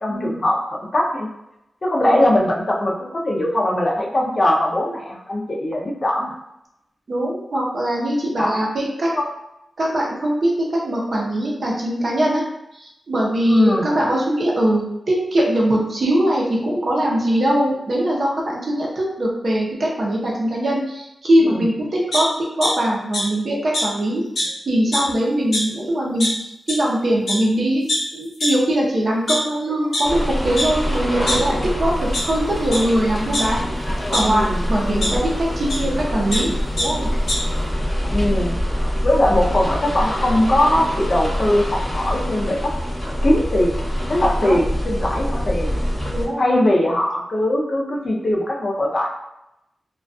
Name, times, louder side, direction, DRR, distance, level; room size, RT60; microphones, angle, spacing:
voice 1, 0.0-1.3 1.8-6.3 8.4-8.6 9.1-9.2 13.5-13.9 21.4-21.6 33.9-35.1 35.8-36.0 38.1-42.7 43.2-43.8 44.1-45.7 46.4-49.1, left 1 dB, 35° left, -1 dB, 0.4 m, -21 dB
voice 2, 2.0-2.4 7.1-9.1 9.8-12.4 12.7-22.3 22.6-24.2 24.7-27.8 28.1-31.9 32.2-33.6 34.1-36.5 36.8-37.1 37.9-38.2 44.4-44.6 46.1-46.7, right 1 dB, 50° right, -2 dB, 0.6 m, -21 dB
sound 1, 22.1-22.7 23.1-23.2 23.7-23.8 24.4-24.5 24.8-25.1 25.5-25.6 26.2-26.3 26.7-26.8 27.3-27.4 27.9-28.0 28.4-28.5 29.1-30.0 30.6-30.7 31.0-31.7 32.1-32.2 32.7-32.8 33.3-34.2 35.0-35.1 35.7-35.8 36.1-36.4 36.8-36.9 37.1-37.4, left 1 dB, 75° left, 0.8 m, -23 dB
sound 2, 30.0-46.3, equal, 5° left, 0.9 m, -24 dB
2.3 x 2.2 x 2.5 m, 0.86 s
wide cardioid pair, 145°, 0 cm